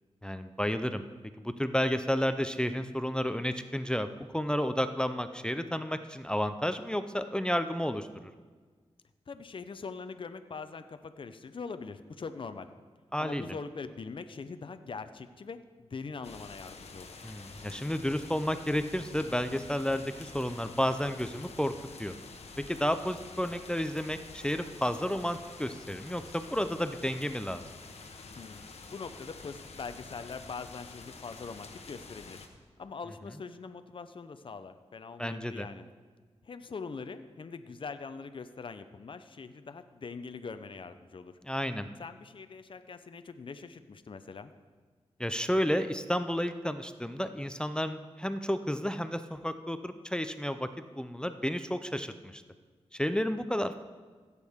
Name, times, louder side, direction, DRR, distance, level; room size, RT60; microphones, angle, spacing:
voice 1, 0.2-1.0 1.4-4.1 4.3-8.1 13.1-13.5 17.2-21.7 22.0-22.1 22.7-27.6 35.2-35.7 41.4-41.9 45.2-50.7 51.0-52.4 52.9-53.8, equal, 10° left, 9 dB, 0.5 m, -31 dB
voice 2, 9.3-12.7 13.2-17.2 28.4-32.5 32.8-35.9 36.5-41.3 42.0-44.5, left 4 dB, 50° left, 10 dB, 0.6 m, -42 dB
sound 1, 16.2-32.5, left 4 dB, 70° left, 1.1 m, -48 dB
16.0 x 8.3 x 3.6 m, 1.5 s
cardioid pair, 70°, 11 cm